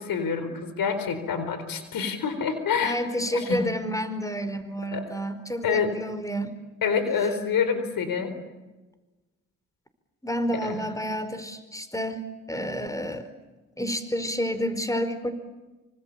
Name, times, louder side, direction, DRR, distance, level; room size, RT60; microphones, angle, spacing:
voice 1, 0.0-3.0 3.3-3.6 4.9-5.0 5.6-5.9 6.8-8.4 10.6-10.8, left 6 dB, 75° left, 10 dB, 4.4 m, -27 dB
voice 2, 2.8-6.5 10.2-13.3 13.8-15.3, equal, 10° left, 11 dB, 4.8 m, -30 dB
26.5 x 25.5 x 8.6 m, 1.2 s
supercardioid pair, 40°, 35 cm